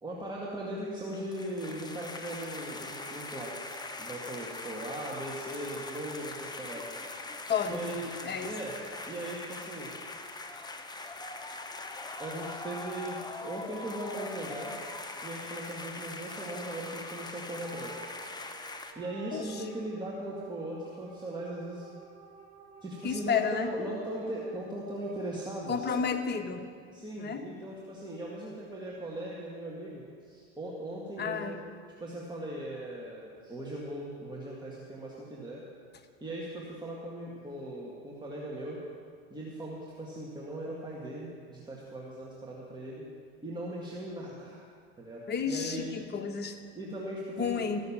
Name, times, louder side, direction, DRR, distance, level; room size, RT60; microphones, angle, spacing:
voice 1, 0.0-3.6 4.0-6.9 7.7-8.1 8.4-8.8 9.1-9.9 12.2-14.7 15.2-18.1 19.0-21.9 22.8-25.9 26.9-31.6 32.0-35.6 36.2-38.8 39.3-43.1 43.4-44.6 45.0-45.9 46.8-47.6, right 1 dB, 15° right, -5 dB, 1.9 m, -39 dB
sound 1, 1.0-18.9, left 2 dB, 15° left, 0.9 m, -42 dB
voice 2, 7.5-8.0 8.2-8.5 19.3-19.6 23.0-23.7 25.7-26.6 27.2-27.5 31.2-31.6 45.3-46.6 47.4-47.8, left 6 dB, 30° left, 5 dB, 1.2 m, -31 dB
sound 2, 17.5-26.1, right 6 dB, 55° right, 2.1 m, -53 dB
14.0 x 6.5 x 7.2 m, 2.1 s
hypercardioid pair, 90°, 32 cm